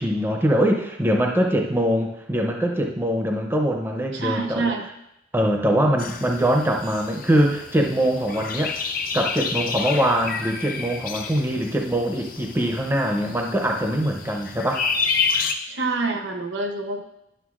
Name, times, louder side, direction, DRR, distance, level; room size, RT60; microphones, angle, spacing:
voice 1, 0.0-4.7 5.3-8.7 9.1-14.8, equal, 10° right, 2 dB, 0.6 m, -22 dB
voice 2, 4.1-4.9 15.7-17.0, right 3 dB, 80° right, 4 dB, 0.9 m, -26 dB
sound 1, 6.0-15.5, left 5 dB, 50° left, 0.6 m, -30 dB
11.0 x 6.7 x 2.4 m, 0.84 s
head